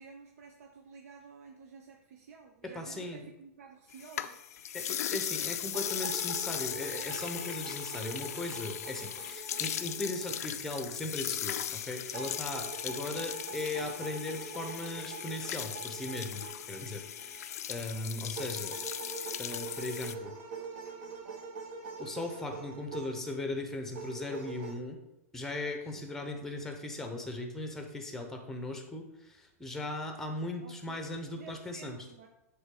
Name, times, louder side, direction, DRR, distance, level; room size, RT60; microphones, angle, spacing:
voice 1, 0.0-4.4 25.8-26.1 30.6-31.1 31.3-32.3, right 5 dB, 75° right, 2 dB, 0.7 m, -52 dB
voice 2, 2.6-3.3 4.7-17.4 17.7-18.7 19.4-20.3 22.0-25.0 25.3-32.0, left 2 dB, 5° left, 4 dB, 0.8 m, -38 dB
sound 1, 3.9-20.1, left 10 dB, 80° left, 0.4 m, -38 dB
sound 2, 5.7-10.8 12.1-17.6 18.3-23.3 23.9-24.7, right 4 dB, 55° right, 1.0 m, -44 dB
7.9 x 3.3 x 3.7 m, 0.89 s
hypercardioid pair, 135°, 8 cm